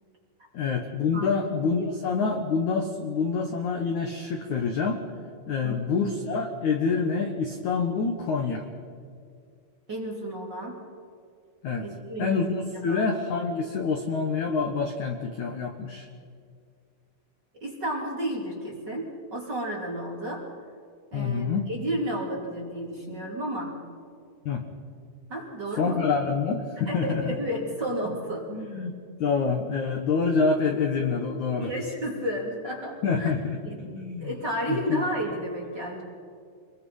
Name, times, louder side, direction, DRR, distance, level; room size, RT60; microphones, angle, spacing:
voice 1, 0.5-5.0 5.5-8.6 11.6-11.9 12.2-16.1 21.1-21.7 24.5-24.6 25.8-27.4 28.5-31.7 33.0-34.3 34.7-35.0, left 5 dB, 65° left, 3 dB, 2.0 m, -27 dB
voice 2, 5.6-6.0 9.9-10.8 11.8-12.4 12.9-13.0 17.6-20.5 21.1-23.7 25.3-26.0 26.9-28.5 31.6-33.3 33.6-33.8 34.2-36.0, right 1 dB, 25° right, -1 dB, 3.0 m, -32 dB
27.0 x 22.0 x 5.6 m, 2.2 s
omnidirectional pair, 5.4 m